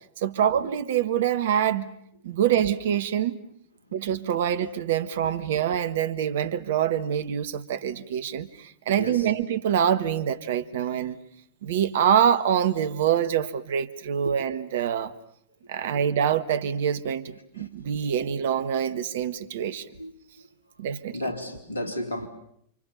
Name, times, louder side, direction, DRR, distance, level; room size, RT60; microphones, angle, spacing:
voice 1, 0.2-1.9 2.2-3.4 3.9-11.2 11.6-15.1 15.7-19.8 20.8-21.2, right 9 dB, 60° right, 1.5 m, -25 dB
voice 2, 9.0-9.3 14.2-14.3 15.8-16.0 17.6-17.7 19.6-20.1 21.1-22.3, left 1 dB, 75° left, 3.8 m, -34 dB
29.5 x 26.5 x 7.2 m
figure-of-eight pair, 90°, 0 cm